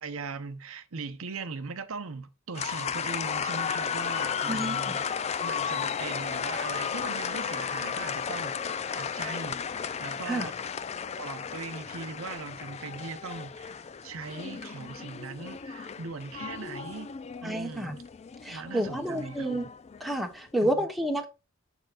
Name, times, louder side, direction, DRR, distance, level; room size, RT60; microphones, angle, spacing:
voice 1, 0.0-5.0 5.4-10.5 11.2-17.1 17.4-18.0 18.5-19.5 20.6-20.7, right 4 dB, 80° right, 0.8 m, -40 dB
sound 1, 2.5-20.2, left 7 dB, 30° left, 0.4 m, -34 dB
voice 2, 4.5-5.0 10.3-10.5 17.4-17.9 18.4-19.7 20.0-21.3, right 1 dB, ahead, 1.1 m, -30 dB
7.1 x 6.6 x 2.4 m
head